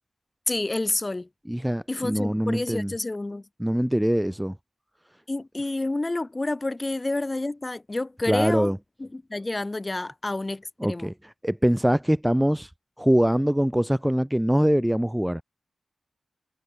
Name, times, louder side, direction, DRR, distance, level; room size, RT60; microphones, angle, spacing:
voice 1, 0.5-1.3 1.9-3.4 5.3-8.7 9.0-11.1, left 2 dB, 20° left, 1.5 m, -29 dB
voice 2, 1.5-2.9 3.6-4.5 8.2-8.8 10.8-12.7 13.0-15.4, equal, 5° right, 0.6 m, -23 dB
wide cardioid pair, 125°, 0 cm